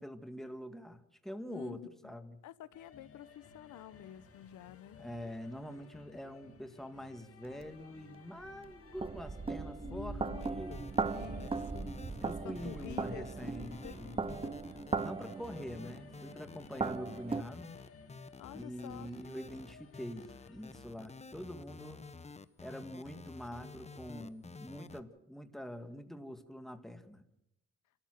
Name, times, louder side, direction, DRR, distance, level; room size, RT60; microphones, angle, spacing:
voice 1, 0.0-2.4 5.0-10.8 12.2-14.3 15.0-17.7 18.5-22.0 22.6-27.2, equal, ahead, 7 dB, 1.9 m, -45 dB
voice 2, 1.5-2.1 2.4-5.0 9.7-14.6 18.4-19.1, left 12 dB, 80° left, 16 dB, 0.9 m, -50 dB
sound 1, 2.7-20.8, left 5 dB, 50° left, 2.5 m, -58 dB
sound 2, 7.6-7.7 8.4-17.4, right 4 dB, 20° right, 0.7 m, -38 dB
sound 3, 10.4-25.0, left 4 dB, 20° left, 1.0 m, -51 dB
29.5 x 13.5 x 6.5 m, 0.83 s
cardioid pair, 90°, 30 cm